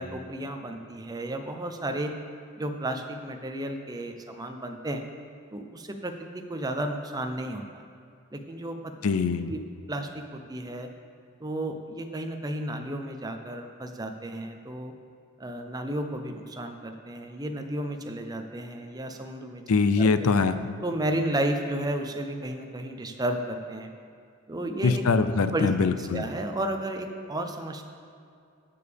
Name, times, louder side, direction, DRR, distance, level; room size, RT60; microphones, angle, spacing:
voice 1, 0.0-2.1 2.6-5.0 5.5-7.8 8.3-8.8 9.5-9.6 9.9-10.9 11.4-14.9 15.4-19.6 20.0-20.1 20.8-23.9 24.5-25.0 25.5-25.7 26.0-27.8, right 1 dB, 20° right, 5 dB, 0.6 m, -33 dB
voice 2, 9.0-9.5 19.7-20.6 24.8-26.2, left 4 dB, 80° left, 11 dB, 0.5 m, -23 dB
19.0 x 6.9 x 3.4 m, 2.4 s
head